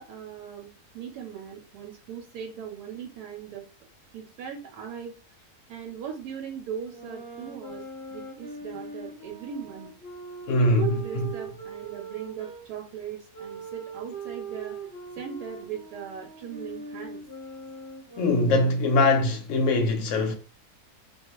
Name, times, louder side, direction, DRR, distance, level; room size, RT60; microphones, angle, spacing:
voice 1, 0.0-3.6 4.1-5.1 5.7-7.8 8.1-9.9 10.6-14.8 15.2-17.2, right 7 dB, 85° right, 1.1 m, -39 dB
sound 1, 6.8-12.6 13.3-18.8, right 4 dB, 20° left, 0.5 m, -41 dB
voice 2, 10.5-10.9 18.2-20.3, left 2 dB, 70° left, 0.8 m, -22 dB
2.4 x 2.3 x 2.9 m
omnidirectional pair, 1.7 m